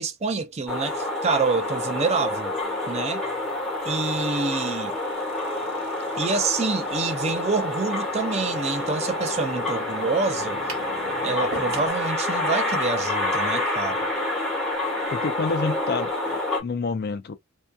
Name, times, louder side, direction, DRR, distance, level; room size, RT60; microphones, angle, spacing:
voice 1, 0.0-2.6 2.9-3.2 3.9-5.0 6.2-10.6 11.2-14.1, right 4 dB, 30° right, 0.4 m, -27 dB
sound 1, 0.7-16.6, left 2 dB, ahead, 1.1 m, -28 dB
sound 2, 3.4-11.9, left 2 dB, 25° left, 1.0 m, -44 dB
sound 3, 10.7-10.9 11.5-12.0, right 3 dB, 70° right, 0.9 m, -35 dB
voice 2, 15.1-17.4, left 4 dB, 45° left, 0.5 m, -28 dB
2.8 x 2.2 x 2.2 m
head